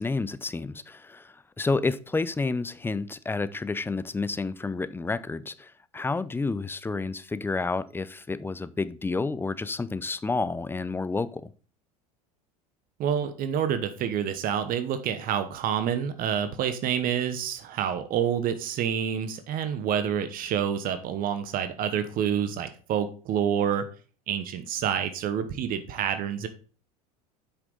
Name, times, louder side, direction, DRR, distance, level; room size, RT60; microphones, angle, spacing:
voice 1, 0.0-11.5, left 3 dB, 10° left, 0.5 m, -30 dB
voice 2, 13.0-23.9 24.3-26.5, right 8 dB, 45° right, 1.0 m, -28 dB
8.2 x 6.0 x 3.9 m
hypercardioid pair, 85°, 20 cm